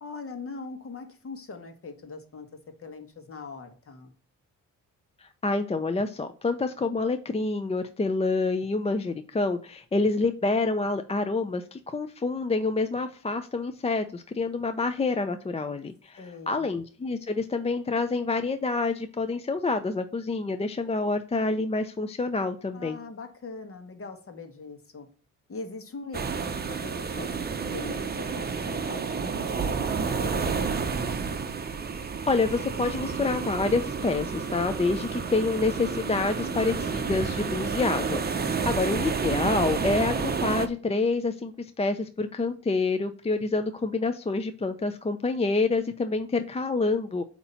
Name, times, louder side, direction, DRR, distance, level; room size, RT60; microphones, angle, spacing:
voice 1, 0.0-2.5 2.8-4.1 16.2-16.7 22.7-25.1 25.5-30.7 38.4-39.2, left 4 dB, 45° left, 7 dB, 1.5 m, -41 dB
voice 2, 5.2-16.2 16.5-23.0 32.3-47.2, left 3 dB, 20° left, 8 dB, 0.5 m, -27 dB
sound 1, 26.1-40.7, right 5 dB, 30° right, 0.7 m, -30 dB
8.2 x 3.0 x 5.5 m, 0.41 s
cardioid pair, 95°, 32 cm